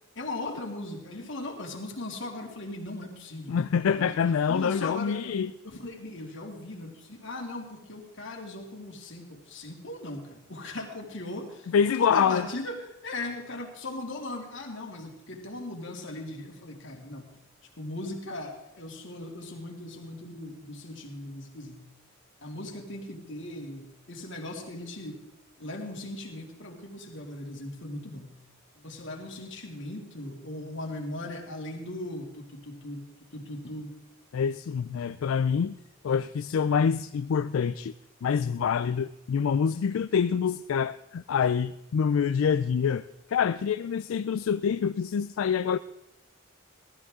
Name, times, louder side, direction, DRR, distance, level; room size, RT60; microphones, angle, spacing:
voice 1, 0.1-3.6 3.9-4.2 4.5-5.4 5.6-17.3 17.8-21.9 22.4-25.2 25.6-28.4 28.7-33.0 33.3-34.0, left 2 dB, 60° left, 1 dB, 2.6 m, -38 dB
voice 2, 3.5-5.5 11.7-12.5 34.3-35.8 36.0-37.9 38.2-45.8, left 7 dB, 85° left, 11 dB, 0.4 m, -26 dB
18.0 x 13.0 x 3.7 m, 0.90 s
head